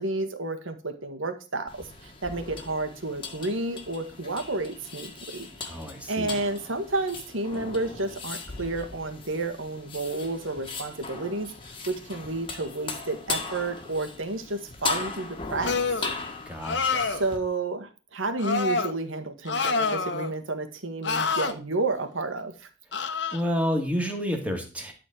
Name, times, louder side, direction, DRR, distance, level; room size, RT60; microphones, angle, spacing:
voice 1, 0.0-5.8 6.1-11.5 11.9-15.7 17.0-22.7, right 2 dB, 75° right, 6 dB, 1.8 m, -31 dB
sound 1, 1.7-17.4, left 4 dB, 25° left, 1.7 m, -38 dB
voice 2, 5.7-6.4 16.5-17.2 23.3-24.9, equal, 5° right, 2 dB, 2.3 m, -29 dB
sound 2, 15.6-16.1 16.6-17.3 18.4-18.9 19.5-20.3 21.0-21.5 22.9-23.4, left 4 dB, 60° left, 1.2 m, -27 dB
12.0 x 4.3 x 7.8 m, 0.33 s
head